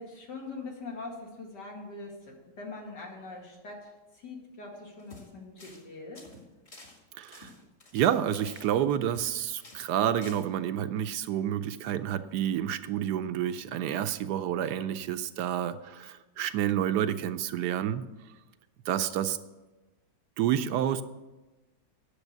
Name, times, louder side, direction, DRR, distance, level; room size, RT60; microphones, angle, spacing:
voice 1, 0.0-6.3, left 3 dB, 75° left, -1 dB, 2.9 m, -43 dB
sound 1, 5.0-5.3 5.6-5.9 6.1-9.3 9.6-9.9 10.2-10.4, left 2 dB, 40° left, 2.2 m, -51 dB
voice 2, 7.2-7.5 7.9-18.0 18.9-19.4 20.4-21.0, right 10 dB, 75° right, 11 dB, 1.1 m, -29 dB
9.8 x 7.0 x 8.0 m, 1.1 s
omnidirectional pair, 1.9 m